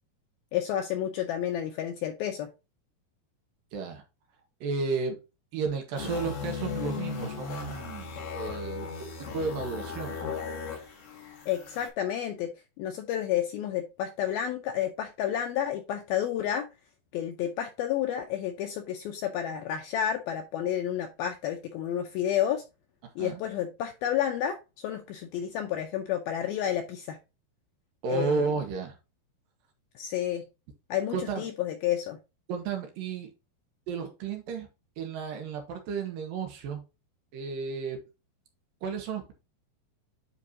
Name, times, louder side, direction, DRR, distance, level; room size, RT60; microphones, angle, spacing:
voice 1, 0.5-2.5 11.5-12.5 12.8-16.7 17.1-22.6 23.2-27.2 28.1-28.5 30.0-30.4 30.9-32.2, left 10 dB, 85° left, 5 dB, 2.1 m, -30 dB
voice 2, 3.7-4.0 4.6-5.2 5.5-10.2 23.2-23.4 28.0-29.0 31.1-31.5 32.5-33.3 33.9-34.7 35.0-36.8 37.3-38.0 38.8-39.3, right 5 dB, 65° right, 4 dB, 2.7 m, -33 dB
sound 1, 6.0-11.9, left 5 dB, 55° left, 3.0 m, -37 dB
9.9 x 4.6 x 2.7 m, 0.28 s
omnidirectional pair, 5.1 m